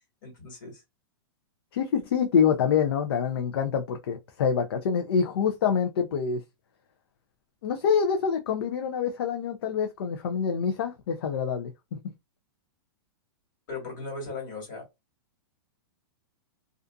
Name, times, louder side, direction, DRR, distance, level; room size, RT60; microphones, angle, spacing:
voice 1, 0.2-0.8 13.7-14.8, left 3 dB, 50° left, 1.6 m, -37 dB
voice 2, 1.7-6.4 7.6-12.0, left 7 dB, 65° left, 0.5 m, -26 dB
2.5 x 2.4 x 2.3 m
supercardioid pair, 165°, 14 cm